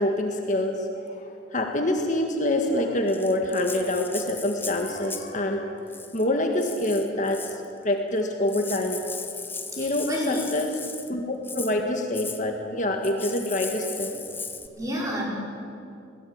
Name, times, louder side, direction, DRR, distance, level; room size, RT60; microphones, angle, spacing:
voice 1, 0.0-5.8 6.1-9.0 9.8-10.7 11.1-14.1, left 1 dB, 40° left, 3 dB, 1.8 m, -26 dB
Rattle (instrument), 3.1-5.4 5.9-6.2 6.6-7.7 8.2-8.3 8.5-11.1 11.4-11.7 12.1-12.4 13.0-14.7, left 4 dB, 10° left, 0.9 m, -37 dB
voice 2, 9.7-10.4 14.7-15.2, equal, 15° right, -3 dB, 5.0 m, -29 dB
22.5 x 17.5 x 8.9 m, 2.5 s
head